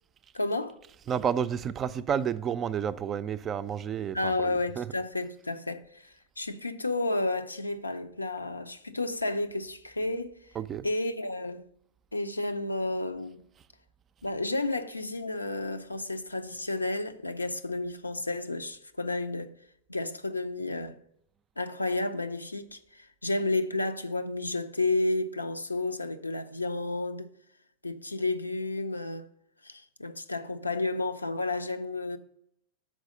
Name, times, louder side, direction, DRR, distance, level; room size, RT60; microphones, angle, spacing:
voice 1, 0.3-0.8 4.1-10.4 10.8-11.7 12.1-13.4 14.2-19.5 19.9-21.0 21.6-27.3 27.8-29.2 29.6-32.2, left 2 dB, 85° left, 0.5 m, -31 dB
voice 2, 1.1-4.9 10.6-10.9, right 8 dB, 25° right, 0.3 m, -31 dB
6.3 x 4.7 x 6.2 m
figure-of-eight pair, 90°, 0 cm